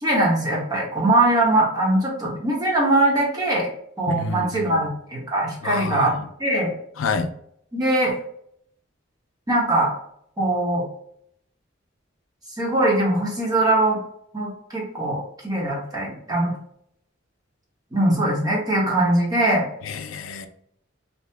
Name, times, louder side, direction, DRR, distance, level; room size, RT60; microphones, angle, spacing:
voice 1, 0.0-3.7 4.0-6.1 6.4-6.7 7.7-8.2 9.5-9.9 10.4-10.8 12.6-14.0 14.3-16.5 17.9-19.6, right 1 dB, 20° right, -3 dB, 0.9 m, -21 dB
voice 2, 4.1-4.9 5.6-6.3 7.0-7.3 19.8-20.5, left 4 dB, 80° left, 8 dB, 0.4 m, -28 dB
2.8 x 2.1 x 3.3 m, 0.70 s
head